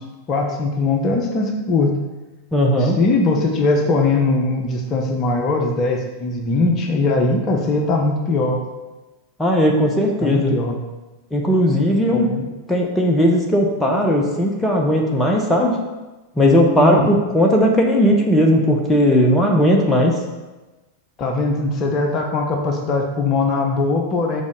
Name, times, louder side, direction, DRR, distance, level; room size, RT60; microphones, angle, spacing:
voice 1, 0.3-1.9 2.8-8.6 10.2-10.8 12.1-12.5 16.8-17.1 21.2-24.4, left 3 dB, 30° left, 2 dB, 1.0 m, -20 dB
voice 2, 2.5-3.0 9.4-10.5 11.3-12.3 12.7-15.8 16.4-20.1, equal, 10° left, 0 dB, 1.0 m, -17 dB
7.3 x 4.1 x 5.3 m, 1.1 s
figure-of-eight pair, 90°, 0 cm